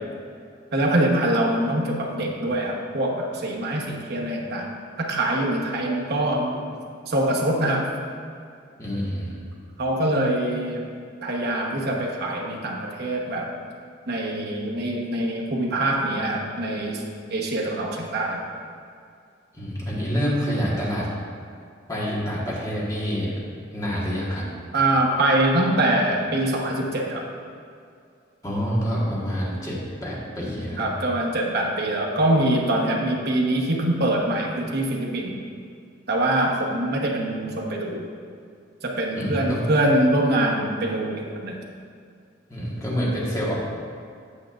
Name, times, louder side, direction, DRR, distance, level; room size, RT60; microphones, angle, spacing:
voice 1, 0.7-4.7 5.0-6.6 7.1-7.9 9.8-10.9 11.2-13.5 14.1-17.0 17.3-18.4 24.7-27.3 30.8-35.4 36.1-38.1 38.8-41.6, right 1 dB, 55° right, -1 dB, 1.0 m, -24 dB
voice 2, 8.8-9.4 19.5-21.1 21.9-23.3 23.7-24.4 28.4-30.9 39.1-39.6 42.5-43.5, equal, 15° left, -6 dB, 1.5 m, -27 dB
8.4 x 8.0 x 2.5 m, 2.3 s
head